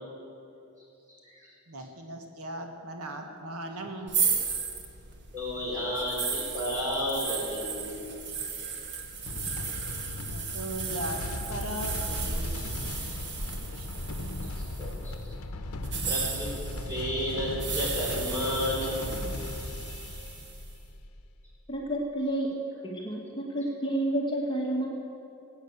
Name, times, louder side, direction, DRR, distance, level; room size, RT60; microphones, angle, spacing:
voice 1, 1.1-1.5 5.3-7.9 14.8-15.1 16.1-16.5 16.8-19.0, left 1 dB, 15° right, -4 dB, 4.6 m, -32 dB
voice 2, 1.7-4.2 10.3-12.8 13.7-13.9 14.4-14.5, right 1 dB, 80° right, 4 dB, 1.4 m, -38 dB
sound 1, 4.1-15.0 15.8-20.6, right 5 dB, 50° right, 1.5 m, -35 dB
sound 2, 9.2-21.4, left 2 dB, 70° left, 0.9 m, -37 dB
voice 3, 21.7-22.5 22.8-24.9, right 1 dB, 20° left, -1 dB, 1.6 m, -30 dB
18.5 x 8.8 x 8.1 m, 2.8 s
head